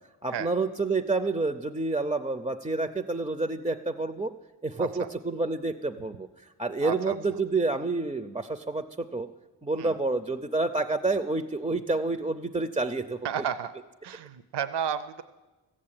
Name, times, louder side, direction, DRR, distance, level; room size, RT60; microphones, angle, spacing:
voice 1, 0.2-4.3 4.6-9.3 9.6-13.2, right 3 dB, 15° right, 10 dB, 0.4 m, -29 dB
voice 2, 6.8-7.1 9.8-9.9 13.2-13.7 14.0-15.2, right 8 dB, 70° right, 13 dB, 0.6 m, -32 dB
14.5 x 7.5 x 8.7 m, 1.2 s
wide cardioid pair, 115°, 43 cm